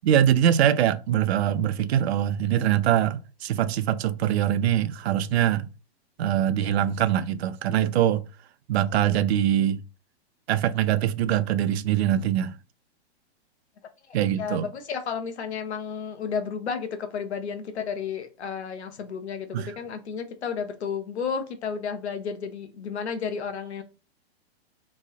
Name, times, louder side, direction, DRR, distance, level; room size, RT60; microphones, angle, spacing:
voice 1, 0.0-5.7 6.2-8.2 8.7-9.8 10.5-12.5 14.1-14.7 19.5-19.7, right 10 dB, 75° right, 0.5 m, -23 dB
voice 2, 14.4-23.8, left 6 dB, 85° left, 0.9 m, -32 dB
3.1 x 2.7 x 3.7 m
hypercardioid pair, 135°, 32 cm